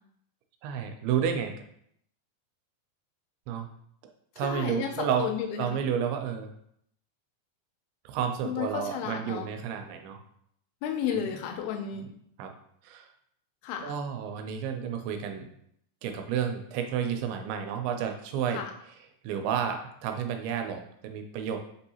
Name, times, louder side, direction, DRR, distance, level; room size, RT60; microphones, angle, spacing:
voice 1, 0.6-1.5 3.5-3.7 4.4-5.3 5.6-6.5 8.1-10.2 11.1-11.3 12.4-12.5 12.8-13.1 13.8-15.5 16.0-18.6 19.2-21.6, right 8 dB, 85° right, 5 dB, 2.5 m, -31 dB
voice 2, 4.4-4.9 5.2-5.8 8.4-9.5 10.8-12.1 13.6-13.9 18.5-18.7, left 8 dB, 80° left, 3 dB, 2.4 m, -32 dB
5.8 x 2.7 x 2.8 m, 0.69 s
omnidirectional pair, 4.4 m